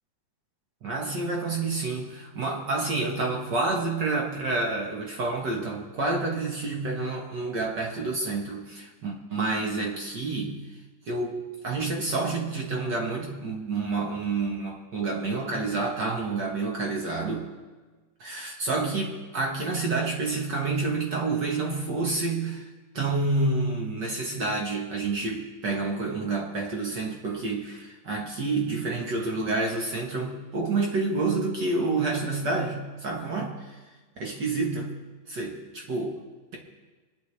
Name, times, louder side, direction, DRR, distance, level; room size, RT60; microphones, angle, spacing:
voice 1, 0.8-10.6 11.0-17.5 18.2-22.7 22.9-33.8 34.2-34.9 35.3-36.2, right 3 dB, 55° right, 0 dB, 1.2 m, -29 dB
25.0 x 10.5 x 3.3 m, 1.3 s
omnidirectional pair, 3.9 m